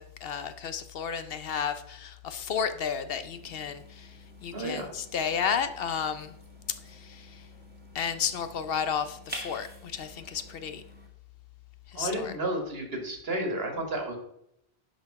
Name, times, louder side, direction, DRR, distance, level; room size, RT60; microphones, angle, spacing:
voice 1, 0.2-4.1 4.4-6.3 6.9-7.4 7.9-10.8 11.9-12.3, left 7 dB, 70° left, 11 dB, 0.9 m, -32 dB
sound 1, 3.3-11.1, right 1 dB, 10° right, 1.4 m, -48 dB
voice 2, 4.5-4.9 11.9-14.2, right 1 dB, 70° right, 4 dB, 2.0 m, -32 dB
10.5 x 5.2 x 4.7 m, 0.76 s
omnidirectional pair, 1.0 m